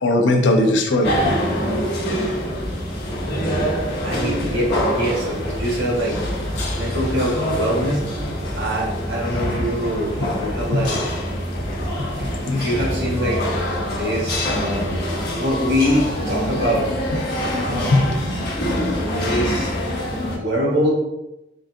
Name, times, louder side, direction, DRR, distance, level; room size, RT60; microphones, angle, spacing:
voice 1, 0.0-1.4 10.8-10.9 12.0-12.7 17.7-18.1, left 2 dB, 80° left, 2 dB, 0.6 m, -19 dB
sound 1, 1.0-20.4, equal, 60° left, 1.3 m, -25 dB
voice 2, 4.0-6.2 6.7-8.0 8.6-11.0 12.1-13.4 13.9-15.1 15.4-16.9 17.6-18.5 19.0-19.7 20.3-20.9, equal, 80° right, -3 dB, 1.3 m, -24 dB
3.8 x 2.6 x 3.5 m, 0.93 s
head